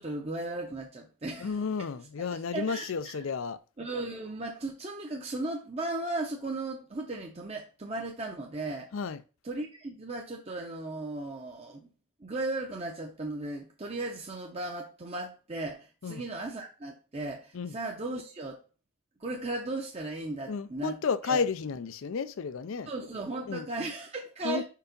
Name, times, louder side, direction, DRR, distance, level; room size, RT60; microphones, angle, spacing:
voice 1, 0.0-1.5 2.3-3.2 3.8-8.9 9.4-11.9 12.2-18.6 19.2-20.9 21.3-21.4 22.9-24.6, right 2 dB, 30° right, 0.7 m, -36 dB
voice 2, 1.4-3.6 8.9-9.2 16.0-16.2 17.5-17.8 20.5-22.9 23.5-23.7 24.4-24.6, left 5 dB, 65° left, 0.4 m, -32 dB
4.8 x 4.7 x 5.1 m
head